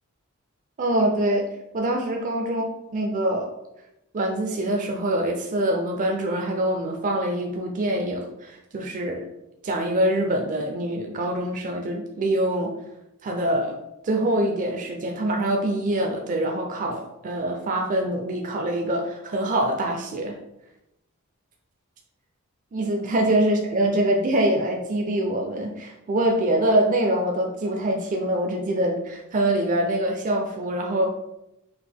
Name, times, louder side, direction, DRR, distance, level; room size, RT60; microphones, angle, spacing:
voice 1, 0.8-1.5 1.7-2.7 2.9-3.5 4.1-9.2 9.6-12.7 13.2-13.8 14.0-20.4 22.7-31.1, right 1 dB, 40° right, 1 dB, 0.4 m, -24 dB
4.7 x 2.1 x 3.5 m, 0.87 s
head